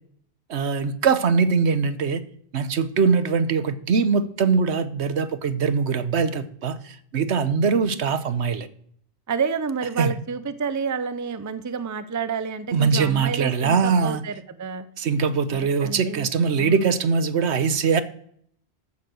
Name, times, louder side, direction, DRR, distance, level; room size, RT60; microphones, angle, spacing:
voice 1, 0.5-2.2 2.5-8.7 10.0-10.1 12.7-14.2 15.0-18.0, right 5 dB, 80° right, 1.2 m, -22 dB
voice 2, 9.3-14.9 15.8-16.3 16.6-16.9, right 6 dB, 20° right, 0.5 m, -29 dB
14.0 x 7.5 x 6.3 m
omnidirectional pair, 1.1 m